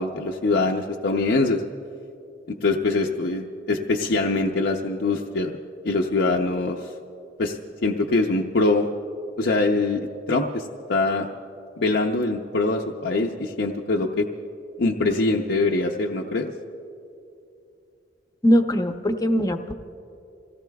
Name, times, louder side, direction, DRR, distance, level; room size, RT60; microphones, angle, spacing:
voice 1, 0.0-1.6 2.6-5.5 5.8-6.9 7.4-8.9 9.4-10.0 10.3-11.3 11.8-14.3 14.8-16.5, left 3 dB, 60° left, 1 dB, 0.6 m, -23 dB
voice 2, 18.4-19.7, equal, 20° left, 6 dB, 0.7 m, -21 dB
27.5 x 17.5 x 2.3 m, 2.7 s
head